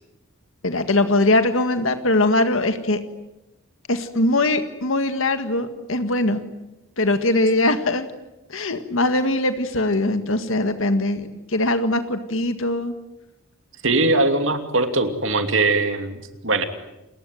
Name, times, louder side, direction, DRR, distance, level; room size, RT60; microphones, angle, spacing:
voice 1, 0.6-3.0 3.9-6.4 7.0-8.1 8.5-12.9, left 2 dB, 70° left, 9 dB, 1.8 m, -21 dB
voice 2, 13.8-16.6, right 2 dB, 65° right, 7 dB, 2.8 m, -21 dB
29.5 x 21.5 x 9.3 m, 0.96 s
head